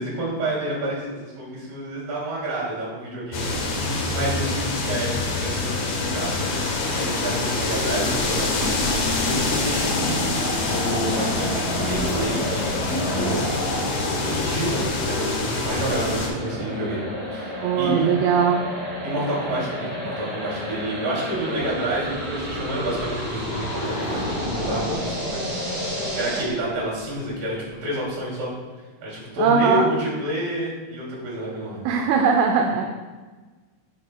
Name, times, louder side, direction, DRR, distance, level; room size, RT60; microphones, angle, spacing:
voice 1, 0.0-5.1 5.4-13.4 14.2-17.0 17.3-18.1 19.0-25.4 26.1-28.5 29.0-31.9, right 1 dB, 50° right, -5 dB, 3.8 m, -29 dB
sound 1, 3.3-16.3, left 3 dB, 80° left, 1.8 m, -25 dB
sound 2, 7.6-26.4, equal, 30° right, 1.7 m, -31 dB
voice 2, 17.6-18.6 29.4-29.9 31.9-32.8, right 6 dB, 85° right, 2 dB, 2.9 m, -20 dB
sound 3, 21.6-28.0, left 2 dB, 60° left, 3.1 m, -36 dB
9.6 x 7.6 x 2.2 m, 1.3 s
omnidirectional pair, 5.7 m